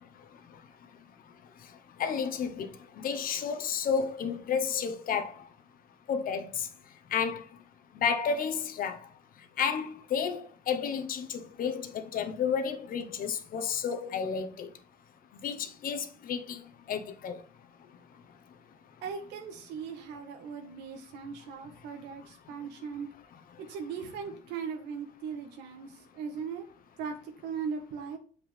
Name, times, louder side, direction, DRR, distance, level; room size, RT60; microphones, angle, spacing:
voice 1, 2.0-2.7 3.0-5.3 6.1-6.7 7.1-7.4 8.0-9.0 9.6-10.4 10.7-14.7 15.4-16.6 16.9-17.4, left 6 dB, 55° left, 1.1 m, -31 dB
voice 2, 19.0-23.1 23.7-25.9 26.1-26.7 27.0-28.2, right 6 dB, 90° right, 1.6 m, -38 dB
7.1 x 6.2 x 3.4 m
cardioid pair, 110°, 17 cm